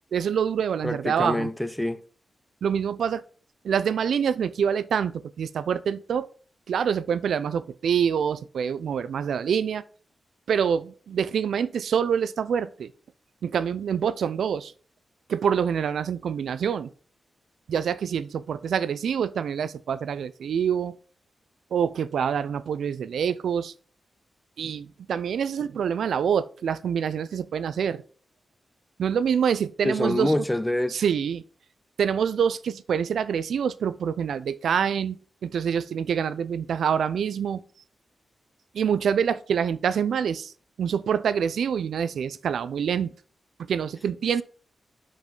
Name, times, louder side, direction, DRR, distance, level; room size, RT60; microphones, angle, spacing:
voice 1, 0.1-1.5 2.6-3.2 3.6-6.3 6.7-9.8 10.5-12.9 13.4-14.7 15.3-16.9 17.7-20.9 21.7-23.7 24.6-28.0 29.0-30.4 30.9-31.4 32.0-37.6 38.7-40.5 40.8-43.1 43.6-44.4, right 7 dB, 90° right, 0.4 m, -26 dB
voice 2, 0.8-2.0 29.8-31.0, left 1 dB, 10° left, 0.4 m, -26 dB
5.5 x 5.1 x 3.8 m
wide cardioid pair, 100°, 0 cm